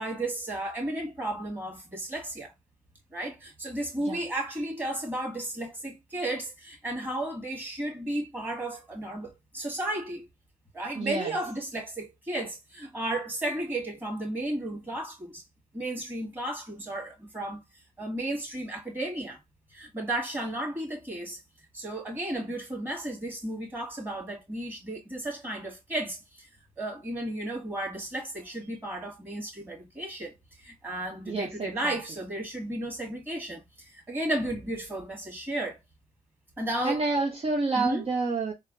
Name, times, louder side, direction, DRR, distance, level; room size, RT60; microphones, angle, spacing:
voice 1, 0.0-2.5 3.1-10.3 10.7-15.4 15.7-17.6 18.0-19.4 19.7-21.4 21.7-26.5 26.8-35.8 36.6-37.0 37.7-38.0, right 1 dB, 15° right, 2.0 m, -33 dB
voice 2, 11.0-11.3 31.3-32.0 36.8-38.5, right 3 dB, 45° right, 0.7 m, -29 dB
4.0 x 2.0 x 2.5 m
cardioid pair, 60°, 14 cm